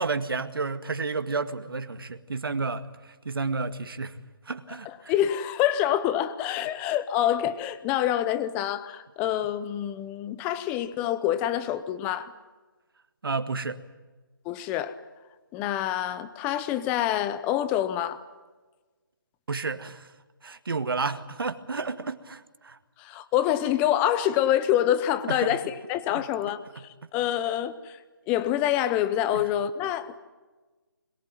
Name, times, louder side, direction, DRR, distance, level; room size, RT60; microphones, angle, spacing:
voice 1, 0.0-4.2 4.5-5.1 13.2-13.8 19.5-20.1 20.4-22.8 25.3-25.6 26.1-26.2 26.8-26.9 29.3-29.4, right 4 dB, 75° right, 2.0 m, -31 dB
voice 2, 5.1-12.3 14.4-14.9 15.5-18.2 23.0-26.6 27.1-28.0 28.3-30.2, left 11 dB, 10° left, 0.7 m, -26 dB
23.0 x 22.0 x 9.2 m
hypercardioid pair, 165°, 12 cm